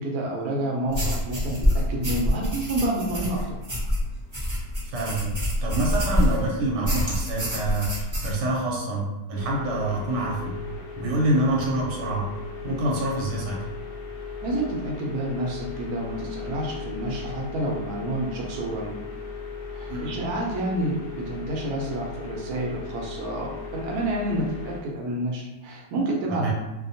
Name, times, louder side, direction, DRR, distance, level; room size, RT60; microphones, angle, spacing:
voice 1, 0.0-3.6 14.4-18.9 19.7-26.5, right 1 dB, 70° right, -1 dB, 1.0 m, -29 dB
sound 1, 0.9-6.4 6.8-8.4, left 1 dB, 25° right, 0.6 m, -26 dB
voice 2, 4.8-5.3 5.6-10.6 11.0-12.3 12.6-13.7 19.9-20.1 26.3-26.5, right 1 dB, 90° right, -2 dB, 1.2 m, -26 dB
sound 2, 9.3-24.8, left 4 dB, 70° left, 0.8 m, -37 dB
2.8 x 2.0 x 2.6 m, 1.1 s
omnidirectional pair, 1.8 m